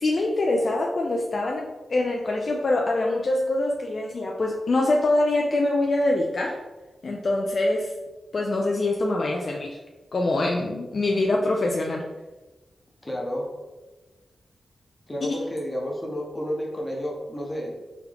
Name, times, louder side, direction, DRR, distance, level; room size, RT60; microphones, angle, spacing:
voice 1, 0.0-6.6 7.0-7.9 8.3-9.8 10.1-12.1 15.2-15.4, left 2 dB, 40° left, 0 dB, 0.3 m, -24 dB
voice 2, 13.0-13.5 15.1-17.8, equal, 15° left, -1 dB, 0.8 m, -31 dB
3.6 x 3.0 x 3.4 m, 1.1 s
wide cardioid pair, 150°, 0 cm